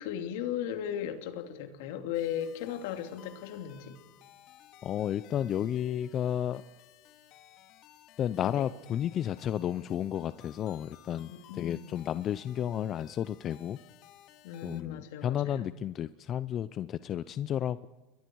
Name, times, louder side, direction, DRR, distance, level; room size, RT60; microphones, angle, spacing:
voice 1, 0.0-4.0 8.4-8.7 11.3-12.0 14.4-15.6, left 9 dB, 75° left, 2.9 m, -37 dB
sound 1, 2.1-14.8, left 12 dB, 55° left, 2.3 m, -57 dB
voice 2, 4.8-6.6 8.2-11.3 11.6-13.8 14.6-17.9, left 10 dB, 40° left, 0.6 m, -32 dB
29.0 x 22.5 x 4.8 m
supercardioid pair, 110°, 0 cm